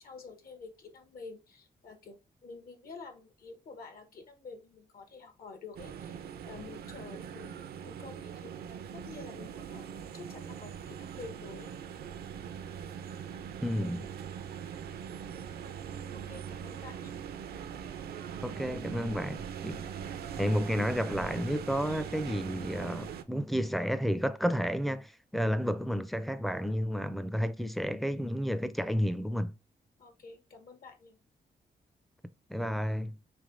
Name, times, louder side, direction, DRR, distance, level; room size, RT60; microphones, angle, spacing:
voice 1, 0.0-8.5 8.9-9.9 10.1-11.7 16.1-17.1 30.0-31.2, left 4 dB, 70° left, 1.1 m, -49 dB
sound 1, 5.8-23.2, right 8 dB, 80° right, 0.5 m, -42 dB
voice 2, 13.6-14.1 18.4-29.5 32.5-33.2, equal, ahead, 0.4 m, -31 dB
3.3 x 3.3 x 3.7 m
cardioid pair, 95°, 16 cm